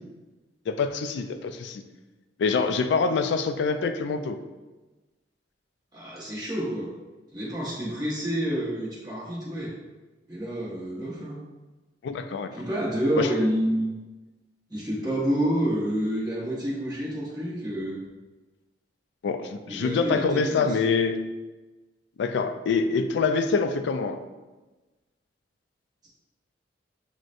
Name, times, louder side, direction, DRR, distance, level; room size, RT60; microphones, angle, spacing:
voice 1, 0.7-1.8 2.4-4.4 12.0-12.5 13.2-13.3 19.2-21.2 22.2-24.2, left 4 dB, 65° left, 8 dB, 0.3 m, -25 dB
voice 2, 5.9-6.9 7.3-9.7 10.3-11.4 12.5-13.9 14.7-18.0 19.7-20.8, equal, 20° right, -8 dB, 0.9 m, -28 dB
6.2 x 2.1 x 2.5 m, 1.2 s
head